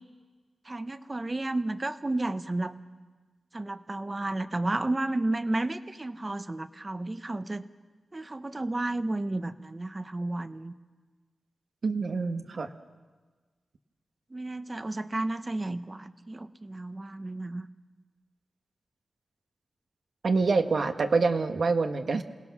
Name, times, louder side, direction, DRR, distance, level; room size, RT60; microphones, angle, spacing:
voice 1, 0.6-2.8 3.5-7.7 8.1-10.7 14.3-17.7, right 2 dB, 30° right, 11 dB, 1.0 m, -32 dB
voice 2, 11.8-12.7 20.2-22.2, right 4 dB, 70° right, 6 dB, 1.3 m, -26 dB
27.5 x 17.0 x 6.0 m, 1.4 s
cardioid pair, 55°, 0 cm